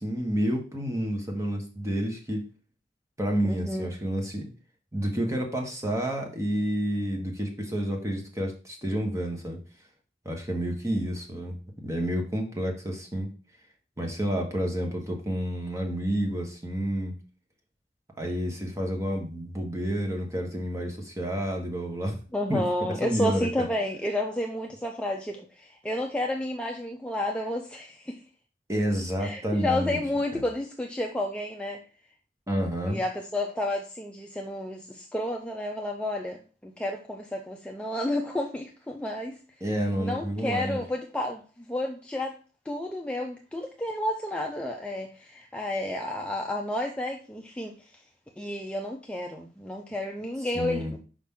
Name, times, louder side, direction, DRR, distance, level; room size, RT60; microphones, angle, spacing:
voice 1, 0.0-2.4 3.2-4.5 4.9-9.6 10.2-11.6 11.8-13.3 14.0-17.2 18.2-22.2 22.5-22.6 23.0-23.7 28.7-30.0 30.3-30.4 32.5-33.0 39.6-40.8 50.5-50.9, equal, 20° right, 1.2 m, -29 dB
voice 2, 3.4-3.9 22.3-28.2 29.2-31.8 32.9-39.4 40.0-42.3 42.7-48.0 48.4-51.0, left 1 dB, 5° left, 0.5 m, -31 dB
5.8 x 5.1 x 3.7 m
head